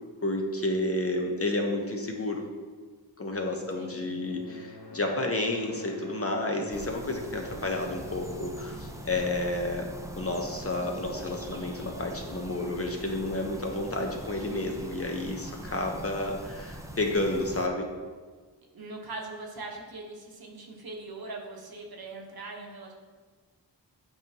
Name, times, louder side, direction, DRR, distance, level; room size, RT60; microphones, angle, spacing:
voice 1, 0.2-2.4 3.2-9.9 10.2-17.9, left 2 dB, 35° left, 2 dB, 0.9 m, -31 dB
voice 2, 3.5-4.2 18.7-22.9, right 2 dB, 60° right, 0 dB, 1.1 m, -41 dB
sound 1, 3.6-10.3, left 1 dB, 75° left, 0.9 m, -48 dB
sound 2, 6.7-17.7, equal, 5° right, 0.6 m, -42 dB
7.9 x 4.6 x 2.9 m, 1.5 s
cardioid pair, 45°, 42 cm